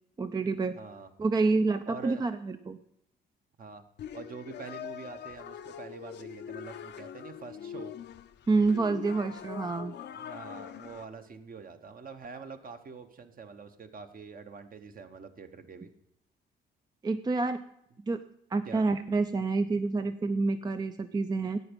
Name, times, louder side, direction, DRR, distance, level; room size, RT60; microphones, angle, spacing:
voice 1, 0.2-0.8 1.2-2.8 8.5-9.9 17.0-17.6 18.1-18.2 18.5-21.6, right 3 dB, 20° right, 10 dB, 0.4 m, -28 dB
voice 2, 0.8-1.1 1.9-2.3 3.6-3.8 4.1-7.9 9.9-15.9 18.6-18.9, right 5 dB, 45° right, 8 dB, 1.0 m, -45 dB
sound 1, 4.0-11.0, left 9 dB, 60° left, 0.6 m, -43 dB
11.0 x 8.0 x 5.2 m, 0.77 s
cardioid pair, 90°, 20 cm